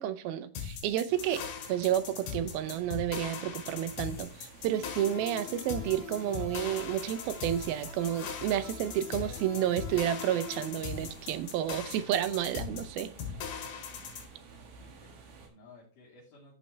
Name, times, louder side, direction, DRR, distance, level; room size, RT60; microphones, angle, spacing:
voice 1, 0.0-1.4 1.7-13.1, right 11 dB, 80° right, 12 dB, 2.5 m, -31 dB
sound 1, 0.6-14.3, left 7 dB, 85° left, 3.7 m, -40 dB
sound 2, 1.1-15.5, right 3 dB, 65° right, 3.3 m, -51 dB
sound 3, 4.7-10.6, left 6 dB, 40° left, 2.9 m, -46 dB
voice 2, 14.5-16.6, left 3 dB, 60° left, -5 dB, 4.1 m, -57 dB
14.0 x 5.9 x 3.3 m, 0.39 s
omnidirectional pair, 4.4 m